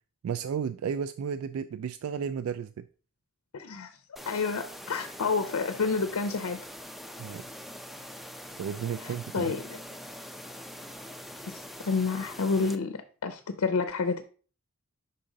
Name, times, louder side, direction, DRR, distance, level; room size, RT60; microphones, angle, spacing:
voice 1, 0.2-2.8 7.2-7.4 8.6-9.5, right 7 dB, 75° right, 0.3 m, -33 dB
voice 2, 3.5-3.9 4.3-6.6 9.0-9.8 11.5-11.6 11.8-14.2, left 4 dB, 80° left, 0.5 m, -29 dB
sound 1, 4.2-12.8, equal, ahead, 0.4 m, -43 dB
5.5 x 5.1 x 3.7 m
head